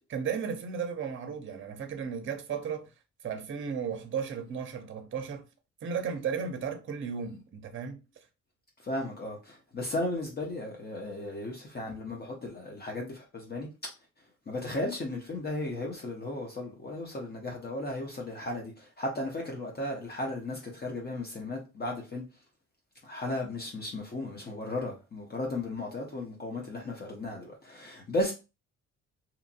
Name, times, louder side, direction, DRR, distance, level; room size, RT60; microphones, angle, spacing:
voice 1, 0.1-2.9 3.2-5.4 5.8-8.0, right 6 dB, 40° right, 0.6 m, -34 dB
voice 2, 8.8-13.7 14.5-22.2 23.0-28.3, left 1 dB, 35° left, 0.7 m, -35 dB
2.9 x 2.5 x 2.5 m
cardioid pair, 90°, 30 cm